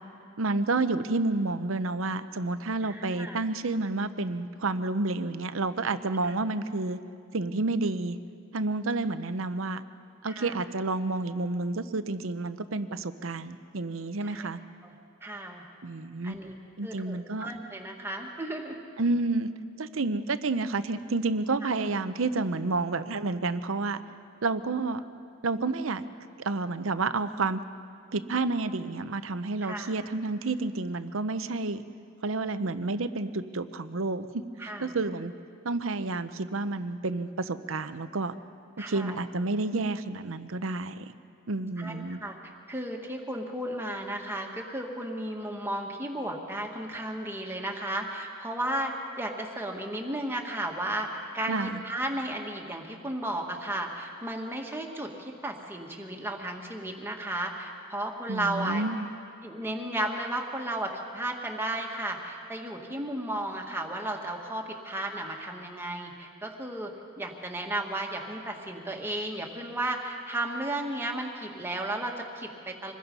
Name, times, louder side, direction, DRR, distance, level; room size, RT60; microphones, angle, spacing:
voice 1, 0.4-7.0 7.3-8.2 8.5-9.8 10.2-14.6 15.8-16.4 16.8-17.5 19.0-19.5 19.8-24.0 24.4-25.0 25.4-26.0 26.4-27.6 28.1-31.8 32.2-35.3 35.6-38.3 38.9-41.0 41.5-42.2 51.5-51.8 58.3-59.1, right 3 dB, 70° right, 12 dB, 0.8 m, -30 dB
voice 2, 2.8-3.4 10.3-10.6 14.2-14.5 14.8-14.9 15.2-15.6 16.2-16.5 16.8-18.8 29.6-29.9 34.6-34.9 38.8-39.2 41.8-48.9 49.2-51.1 51.3-51.6 51.8-58.8 59.4-66.9 67.2-72.9, right 1 dB, 10° right, 1 dB, 1.9 m, -34 dB
25.5 x 20.0 x 5.5 m, 2.4 s
head